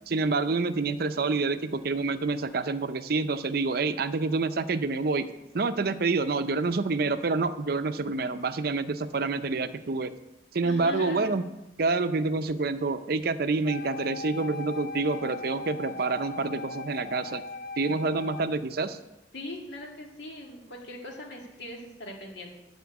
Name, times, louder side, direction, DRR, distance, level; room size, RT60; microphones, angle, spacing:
voice 1, 0.1-5.3 5.5-10.1 10.5-11.4 11.8-17.4 17.8-19.0, right 3 dB, 55° right, 11 dB, 0.6 m, -27 dB
voice 2, 10.6-11.3 19.3-22.5, left 1 dB, 75° left, 0 dB, 2.2 m, -40 dB
Wind instrument woodwind instrument, 13.7-18.6, left 3 dB, 50° left, 0.4 m, -39 dB
12.5 x 4.4 x 8.3 m, 0.98 s
head